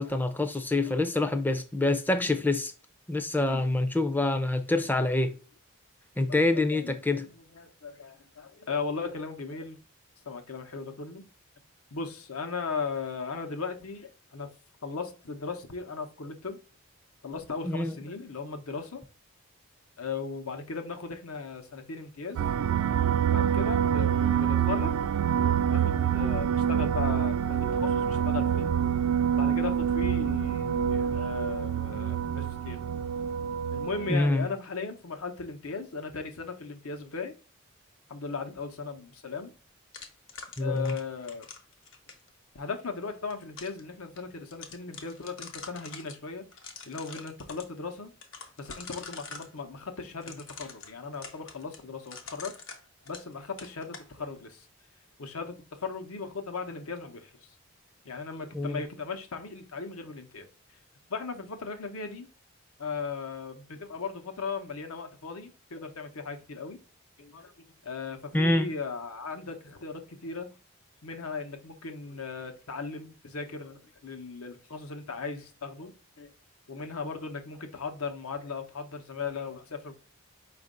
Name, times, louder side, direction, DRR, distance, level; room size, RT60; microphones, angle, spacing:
voice 1, 0.0-2.7 3.1-5.3 6.2-7.3 17.6-18.0 34.1-34.5 40.6-40.9 58.5-58.8 68.3-68.7, left 2 dB, 10° left, 0.4 m, -26 dB
voice 2, 0.8-1.3 3.4-3.7 5.2-5.4 6.3-7.0 7.2-9.8 10.3-11.2 11.9-14.5 14.8-16.6 17.2-19.0 20.0-22.4 23.3-25.0 25.4-28.7 29.4-32.8 33.7-37.3 38.1-39.5 40.6-41.5 42.5-46.4 46.9-48.1 48.6-52.5 53.1-54.7 55.2-57.5 58.0-60.5 61.1-62.3 62.8-66.8 67.2-70.5 71.0-75.9 76.2-76.3 76.7-79.9, left 4 dB, 80° left, 0.9 m, -37 dB
sound 1, 22.4-34.2, right 8 dB, 85° right, 0.3 m, -26 dB
sound 2, 39.9-42.3 43.1-43.8 44.2-44.3 44.5-46.2 46.5-47.7 48.2-49.5 50.2-53.3 53.6-54.1, left 5 dB, 60° left, 1.0 m, -44 dB
5.2 x 2.6 x 3.7 m
head